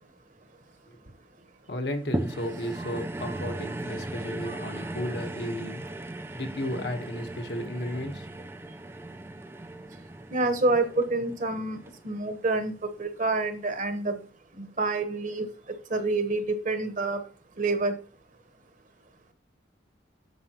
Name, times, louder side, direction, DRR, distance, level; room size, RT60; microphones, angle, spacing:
voice 1, 1.7-5.8 6.3-8.3, left 1 dB, 60° left, 1.1 m, -33 dB
sound 1, 2.1-12.6 13.2-13.3, right 1 dB, 15° right, 0.4 m, -37 dB
voice 2, 10.3-11.8 12.0-12.7 13.0-14.1 14.8-15.5 15.9-17.2 17.6-17.9, right 3 dB, 45° right, 1.1 m, -27 dB
9.3 x 6.7 x 2.9 m
head